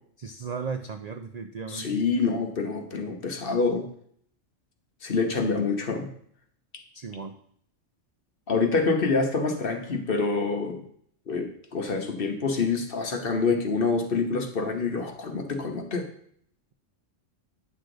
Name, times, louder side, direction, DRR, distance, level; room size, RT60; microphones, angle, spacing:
voice 1, 0.2-1.9 6.9-7.4, right 5 dB, 60° right, 6 dB, 0.4 m, -35 dB
voice 2, 1.7-3.9 5.0-6.1 8.5-10.8 11.3-16.1, left 4 dB, 50° left, 4 dB, 1.2 m, -26 dB
9.4 x 6.4 x 3.9 m, 0.64 s
omnidirectional pair, 1.3 m